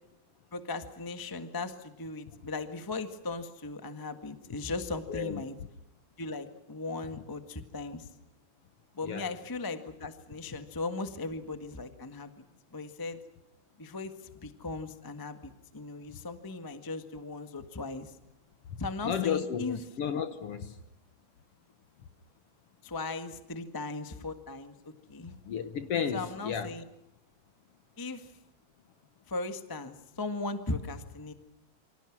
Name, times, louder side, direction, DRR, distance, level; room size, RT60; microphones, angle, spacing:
voice 1, 0.5-5.6 6.2-8.1 9.0-12.3 12.7-13.2 13.8-18.1 18.8-19.8 22.8-25.3 26.1-26.8 28.0-28.3 29.3-31.3, left 3 dB, 25° left, 0.4 m, -38 dB
voice 2, 5.1-5.4 9.0-9.3 19.0-20.8 25.4-26.7, left 8 dB, 60° left, 1.6 m, -33 dB
28.0 x 25.5 x 6.1 m
omnidirectional pair, 3.8 m